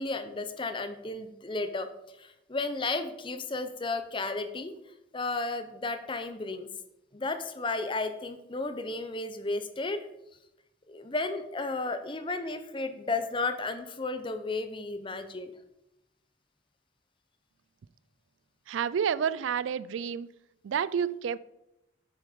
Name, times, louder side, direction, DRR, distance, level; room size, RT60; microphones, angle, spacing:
voice 1, 0.0-1.9 2.2-4.7 5.1-6.7 7.1-10.1 10.9-15.5, left 3 dB, 25° left, 9 dB, 0.6 m, -33 dB
voice 2, 18.7-20.3 20.6-21.4, right 7 dB, 75° right, 18 dB, 0.3 m, -29 dB
7.9 x 6.3 x 5.0 m, 0.88 s
head